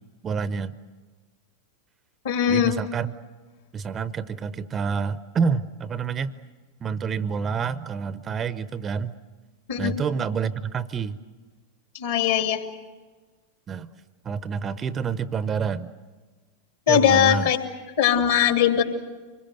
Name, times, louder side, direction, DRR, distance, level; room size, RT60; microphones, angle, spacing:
voice 1, 0.2-0.7 2.5-3.1 3.7-6.3 6.8-9.1 9.8-11.2 13.7-13.9 14.2-15.9 16.9-17.5, right 6 dB, 25° right, 16 dB, 0.7 m, -28 dB
voice 2, 2.2-2.7 9.7-9.9 11.9-12.6 16.9-17.6 18.0-18.8, left 9 dB, 55° left, 6 dB, 2.4 m, -20 dB
25.5 x 22.0 x 7.8 m, 1.3 s
figure-of-eight pair, 90°, 0 cm